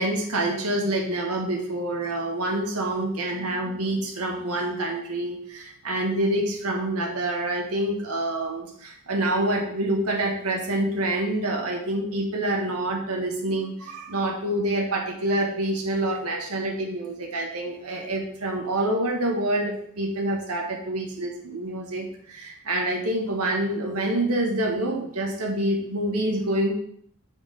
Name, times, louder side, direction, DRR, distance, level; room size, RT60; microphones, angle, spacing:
voice 1, 0.0-26.7, right 1 dB, 90° right, 0 dB, 1.7 m, -27 dB
7.2 x 6.2 x 5.3 m, 0.64 s
head